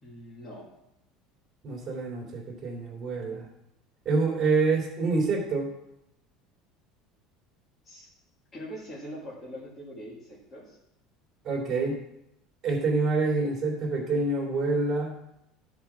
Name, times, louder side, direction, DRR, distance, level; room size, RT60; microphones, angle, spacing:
voice 1, 0.0-0.7 7.8-8.1 8.5-10.8, equal, 20° left, -7 dB, 1.9 m, -42 dB
voice 2, 1.6-3.5 4.0-5.7 11.4-12.0 12.6-15.1, right 3 dB, 25° right, -1 dB, 2.8 m, -27 dB
13.0 x 4.8 x 6.1 m, 0.83 s
cardioid pair, 175°, 0 cm